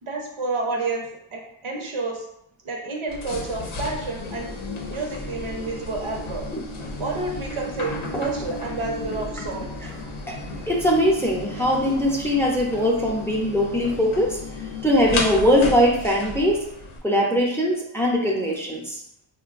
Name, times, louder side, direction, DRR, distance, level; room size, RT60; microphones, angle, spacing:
voice 1, 0.0-2.3 2.6-4.5 4.9-6.5 7.0-9.7 10.4-10.5, right 3 dB, 80° right, 0 dB, 0.8 m, -30 dB
sound 1, 3.1-17.0, left 2 dB, 80° left, 0.6 m, -33 dB
voice 2, 10.7-14.4 14.8-16.6 17.0-19.0, equal, 5° left, -1 dB, 0.5 m, -21 dB
3.8 x 2.2 x 2.4 m, 0.75 s
wide cardioid pair, 75°, 49 cm